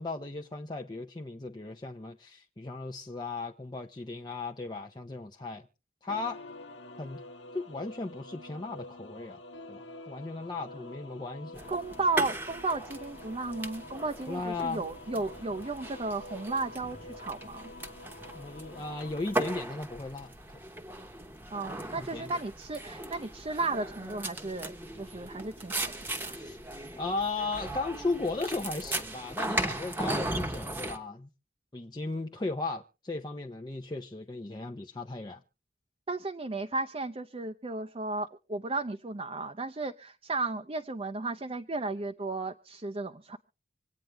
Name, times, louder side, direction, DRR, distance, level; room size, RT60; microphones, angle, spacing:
voice 1, 0.0-5.7 6.0-6.4 7.0-7.2 7.5-9.4 9.7-11.6 14.3-14.8 18.3-20.3 21.9-22.3 26.2-26.6 27.0-31.3 31.7-35.4, left 3 dB, 25° left, 0.7 m, -36 dB
sound 1, 6.1-19.6, left 2 dB, 80° left, 1.2 m, -47 dB
sound 2, 11.5-31.0, right 1 dB, 10° right, 1.1 m, -38 dB
voice 2, 11.7-17.7 21.5-26.3 36.1-43.4, right 3 dB, 30° right, 0.6 m, -34 dB
26.0 x 9.1 x 3.4 m
head